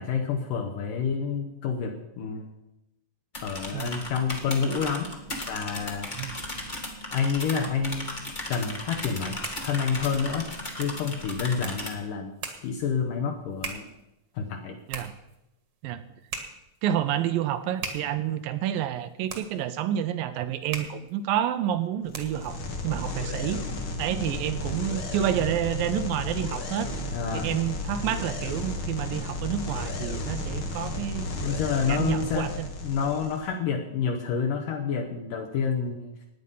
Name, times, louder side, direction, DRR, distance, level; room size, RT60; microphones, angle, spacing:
voice 1, 0.0-2.5 3.4-5.1 5.5-6.1 7.1-8.1 8.5-10.5 10.7-12.3 12.6-13.9 14.3-14.8 27.1-27.5 31.4-32.5 32.8-36.1, left 6 dB, 70° left, 3 dB, 2.5 m, -28 dB
sound 1, 3.3-11.9, left 1 dB, 35° left, 0.7 m, -36 dB
sound 2, 9.2-22.6, right 5 dB, 50° right, 2.0 m, -42 dB
voice 2, 16.8-26.9 27.3-31.3 31.9-32.7, right 11 dB, 75° right, 11 dB, 2.3 m, -29 dB
sound 3, 22.1-33.5, left 2 dB, 50° left, 1.6 m, -33 dB
16.5 x 9.8 x 5.5 m, 0.89 s
omnidirectional pair, 4.5 m